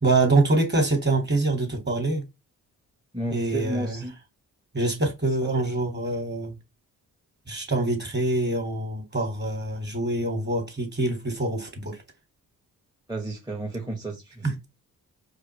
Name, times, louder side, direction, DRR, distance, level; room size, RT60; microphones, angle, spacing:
voice 1, 0.0-2.3 3.3-4.0 4.7-6.5 7.5-12.0 14.4-14.5, right 2 dB, 25° right, 2.0 m, -25 dB
voice 2, 3.1-4.1 5.4-5.8 13.1-14.5, right 2 dB, 10° right, 1.1 m, -32 dB
4.8 x 2.5 x 3.1 m
hypercardioid pair, 40°, 41 cm